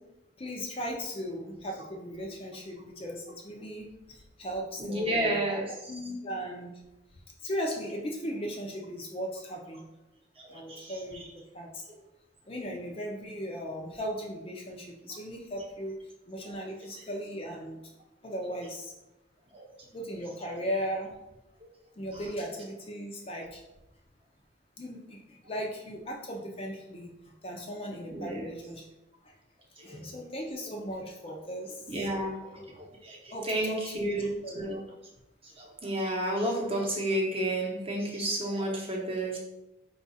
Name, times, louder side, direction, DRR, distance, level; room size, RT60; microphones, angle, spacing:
voice 1, 0.4-5.6 5.9-6.8 7.4-9.9 10.5-11.3 11.5-11.9 12.4-16.0 16.3-17.8 18.2-18.9 19.9-21.1 22.0-23.6 24.8-28.9 29.2-29.3 29.8-31.9 33.3-34.2 34.4-34.6, equal, 30° left, 1 dB, 0.5 m, -37 dB
voice 2, 4.8-5.9 10.4-11.3 16.5-16.6 19.5-19.7 22.1-22.2 28.1-28.5 29.8-30.0 31.9-34.8 35.4-39.4, right 1 dB, 30° right, -1 dB, 0.8 m, -32 dB
4.7 x 2.4 x 4.0 m, 0.93 s
head